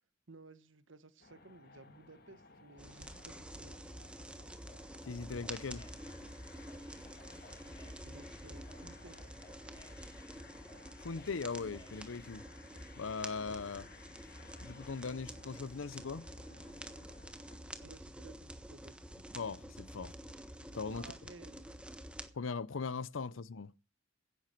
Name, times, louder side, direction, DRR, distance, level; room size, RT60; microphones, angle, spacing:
voice 1, 0.3-3.9 8.0-9.2 17.7-19.0 20.9-21.5, right 3 dB, 70° right, 1.3 m, -56 dB
sound 1, 1.2-17.6, left 4 dB, 50° left, 2.0 m, -59 dB
sound 2, 2.8-22.3, right 1 dB, 5° right, 1.3 m, -49 dB
sound 3, 4.2-12.0, left 1 dB, 25° left, 2.8 m, -62 dB
voice 2, 5.0-5.9 11.0-12.4 13.0-13.9 14.6-16.3 19.3-20.2 20.7-21.1 22.3-23.7, left 4 dB, 75° left, 0.6 m, -40 dB
16.5 x 10.0 x 4.5 m
head